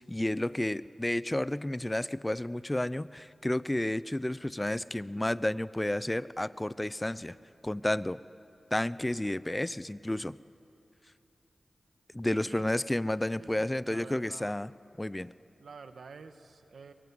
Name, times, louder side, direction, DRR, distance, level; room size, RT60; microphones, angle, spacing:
voice 1, 0.0-7.4 7.6-8.2 8.7-10.4 12.1-14.7 15.0-15.3, left 1 dB, 20° left, 18 dB, 0.6 m, -31 dB
voice 2, 12.3-12.7 13.4-14.6 15.6-16.9, right 5 dB, 90° right, 8 dB, 1.4 m, -49 dB
23.5 x 21.5 x 9.6 m, 2.8 s
cardioid pair, 50°, 0 cm